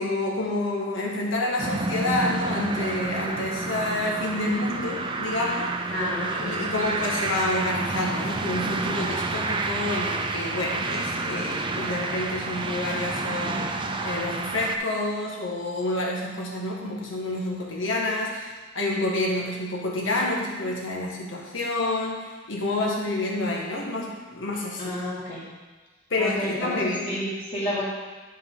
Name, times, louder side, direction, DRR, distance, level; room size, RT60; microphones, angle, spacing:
voice 1, 0.0-5.9 6.3-24.9 26.1-27.2, left 2 dB, 85° left, -2 dB, 1.6 m, -28 dB
sound 1, 1.6-14.8, right 3 dB, 25° right, 0.5 m, -29 dB
voice 2, 5.9-7.0 24.8-25.4 26.2-26.7 27.0-27.8, left 1 dB, 30° left, -13 dB, 2.2 m, -30 dB
11.0 x 5.2 x 3.8 m, 1.3 s
head